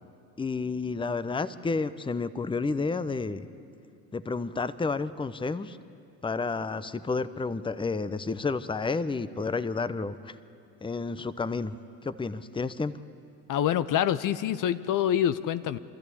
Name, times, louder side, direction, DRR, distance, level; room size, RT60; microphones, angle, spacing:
voice 1, 0.4-3.5 4.1-5.8 6.2-10.3 10.8-11.8 12.0-12.9, left 4 dB, 10° left, 15 dB, 0.8 m, -30 dB
voice 2, 13.5-15.8, left 10 dB, 50° left, 14 dB, 0.8 m, -26 dB
25.5 x 14.0 x 8.5 m, 2.6 s
hypercardioid pair, 60°, 41 cm